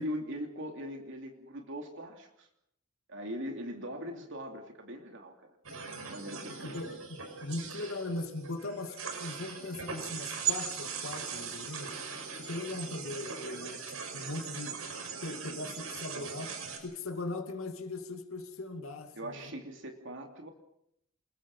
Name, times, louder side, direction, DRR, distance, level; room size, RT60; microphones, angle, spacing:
voice 1, 0.0-2.5 3.1-5.6 6.1-6.8 19.1-20.5, equal, 65° right, 3 dB, 3.0 m, -40 dB
sound 1, 5.6-16.8, right 6 dB, 85° right, 6.0 m, -39 dB
voice 2, 6.6-11.9 12.4-14.8 15.2-19.5, left 2 dB, 80° left, 4 dB, 2.5 m, -39 dB
28.5 x 22.0 x 5.6 m, 0.73 s
head